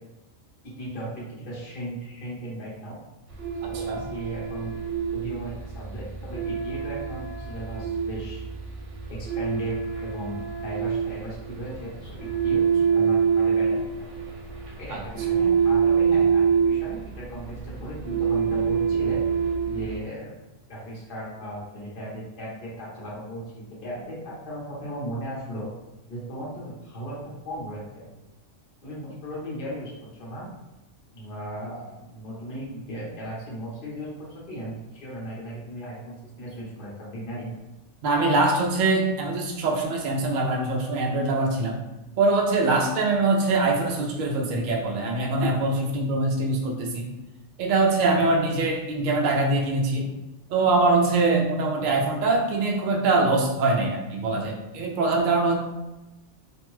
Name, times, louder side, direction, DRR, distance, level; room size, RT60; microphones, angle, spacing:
voice 1, 0.6-3.0 3.6-4.8 5.1-8.4 9.1-9.7 10.0-14.1 14.8-19.2 19.6-20.3 20.7-25.7 26.1-27.2 27.4-28.0 28.8-29.9 30.2-30.5 31.1-37.6, right 1 dB, 45° left, -6 dB, 1.0 m, -36 dB
sound 1, 3.3-20.0, right 6 dB, 75° right, 0.9 m, -26 dB
voice 2, 3.7-4.0 14.9-15.0 38.0-41.8 42.2-47.1 47.6-50.1 50.5-55.5, right 3 dB, 60° right, 1 dB, 0.5 m, -23 dB
2.6 x 2.2 x 3.0 m, 1.0 s
omnidirectional pair, 1.3 m